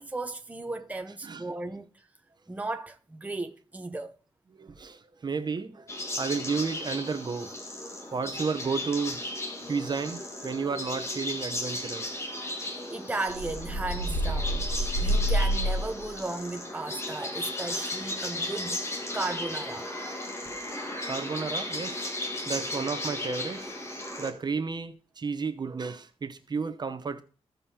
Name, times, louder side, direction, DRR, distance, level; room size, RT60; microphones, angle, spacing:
voice 1, 0.0-2.0 2.5-4.2 12.6-19.9, right 2 dB, 15° right, 0.8 m, -36 dB
voice 2, 4.6-5.9 6.2-7.5 8.1-9.2 9.7-12.5 12.8-12.9 21.1-22.1 22.5-23.7 24.2-27.2, right 5 dB, 40° right, 0.9 m, -32 dB
sound 1, 5.9-24.3, left 1 dB, 25° left, 1.6 m, -35 dB
sound 2, 13.3-16.1, equal, 80° left, 2.9 m, -28 dB
15.5 x 5.3 x 2.9 m
cardioid pair, 100°, 11 cm